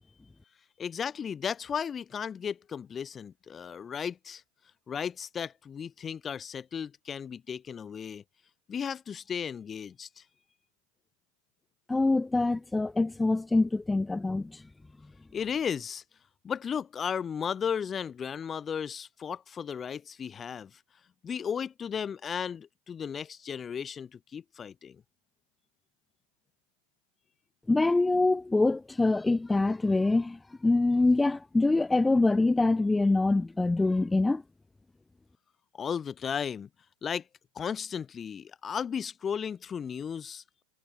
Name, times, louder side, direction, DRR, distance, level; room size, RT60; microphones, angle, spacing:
voice 1, 0.8-4.4 4.9-8.2 8.7-10.2 15.3-16.0 16.4-20.8 21.2-25.0 35.7-36.7 37.0-37.2 37.5-40.6, left 7 dB, 25° left, 2.3 m, -35 dB
voice 2, 11.9-14.6 27.7-34.4, left 2 dB, 10° left, 2.7 m, -25 dB
hypercardioid pair, 95°, 0 cm